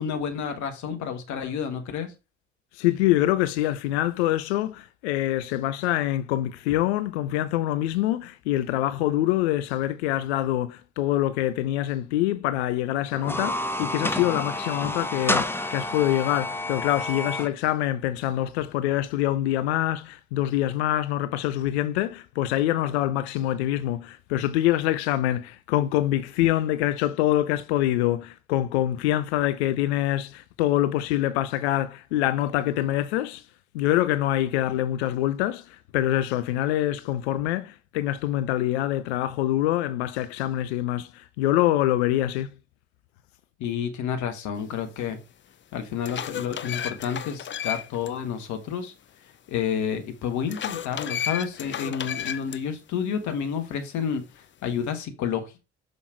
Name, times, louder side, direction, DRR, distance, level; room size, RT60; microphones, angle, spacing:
voice 1, 0.0-2.1 43.6-45.2 45.7-48.9 49.5-55.6, left 7 dB, 60° left, 1.3 m, -30 dB
voice 2, 2.8-33.4 33.7-42.5, left 13 dB, 75° left, 0.6 m, -25 dB
sound 1, 13.1-17.5, left 1 dB, 5° left, 0.9 m, -29 dB
sound 2, 45.1-45.2 45.7-48.1 48.5-48.6 50.5-52.6, left 9 dB, 35° left, 0.7 m, -33 dB
6.5 x 5.4 x 4.5 m
figure-of-eight pair, 50°, 34 cm